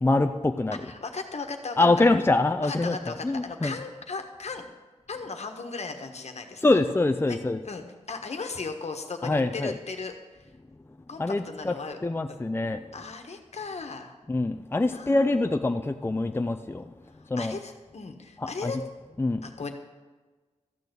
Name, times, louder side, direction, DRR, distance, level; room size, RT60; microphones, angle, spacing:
voice 1, 0.0-0.9 1.8-3.7 6.6-7.6 9.2-9.7 11.2-11.7 12.0-12.8 14.3-16.9 17.3-17.6 18.4-18.7 19.2-19.5, left 2 dB, 20° left, 7 dB, 0.5 m, -25 dB
voice 2, 0.8-1.9 2.6-4.6 5.1-6.8 7.3-7.4 7.6-10.1 11.1-12.0 12.3-12.4 12.9-14.1 14.9-15.2 17.4-18.8 19.4-19.7, left 4 dB, 60° left, 5 dB, 1.4 m, -36 dB
13.5 x 6.7 x 8.2 m, 1.3 s
wide cardioid pair, 80°, 12 cm